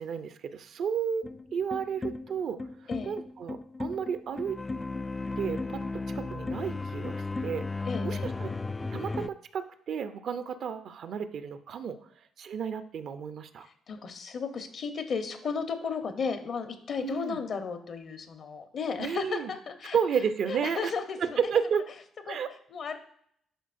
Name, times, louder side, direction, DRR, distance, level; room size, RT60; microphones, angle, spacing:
voice 1, 0.0-2.6 3.0-4.6 5.4-8.5 8.9-12.0 12.4-13.7 17.0-17.4 19.0-19.5 19.9-20.9 21.2-21.8 22.3-22.5, right 7 dB, 65° right, 11 dB, 0.6 m, -32 dB
sound 1, 1.2-9.3, left 3 dB, 25° left, 0.3 m, -35 dB
voice 2, 7.9-8.3 13.9-20.0 20.5-21.4 22.3-22.4 22.7-23.0, left 5 dB, 60° left, 7 dB, 1.0 m, -34 dB
10.0 x 4.8 x 2.6 m, 0.68 s
hypercardioid pair, 50°, 0 cm